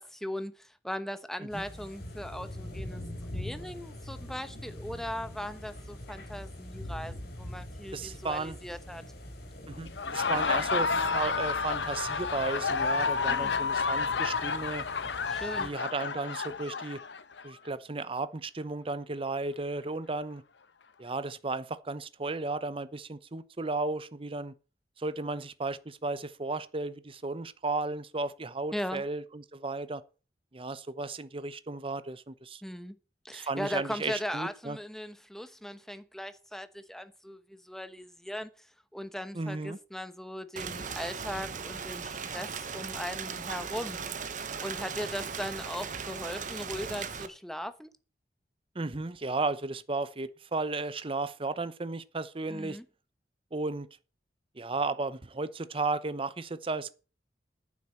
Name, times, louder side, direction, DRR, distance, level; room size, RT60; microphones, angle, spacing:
voice 1, 0.0-3.0 3.3-9.0 13.3-13.6 15.3-15.7 28.7-29.0 32.6-32.9 33.2-38.5 38.9-44.0 44.6-47.9 52.5-52.9, equal, ahead, 0.9 m, -38 dB
sound 1, 1.5-15.7, left 1 dB, 60° left, 3.7 m, -43 dB
voice 2, 7.9-8.6 9.7-14.8 15.6-17.0 17.4-20.4 21.0-24.5 25.0-30.0 30.5-32.6 33.3-34.8 39.3-39.8 48.7-52.8 53.5-53.9 54.5-56.9, right 3 dB, 30° right, 0.8 m, -34 dB
Laughter, 9.9-17.5, left 5 dB, 90° left, 1.0 m, -30 dB
Rain, 40.6-47.3, right 6 dB, 45° right, 1.1 m, -38 dB
9.4 x 7.3 x 7.6 m
head